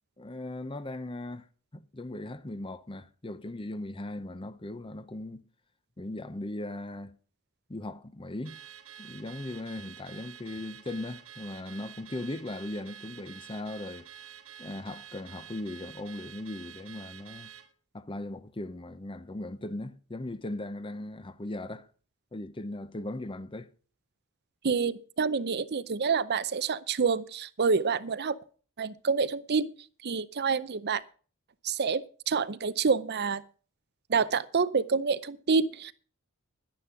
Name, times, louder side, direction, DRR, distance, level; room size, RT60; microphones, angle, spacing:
voice 1, 0.2-1.4 1.7-5.4 6.0-7.2 7.7-8.6 9.0-14.1 14.6-17.5 17.9-21.9 22.3-23.7, left 1 dB, 25° left, 0.7 m, -38 dB
Car / Alarm, 8.4-17.7, right 9 dB, 65° right, 1.5 m, -49 dB
voice 2, 24.6-28.4 28.8-29.7 30.0-31.0 31.6-33.4 34.1-35.9, right 5 dB, 45° right, 0.6 m, -27 dB
11.5 x 10.5 x 5.8 m
head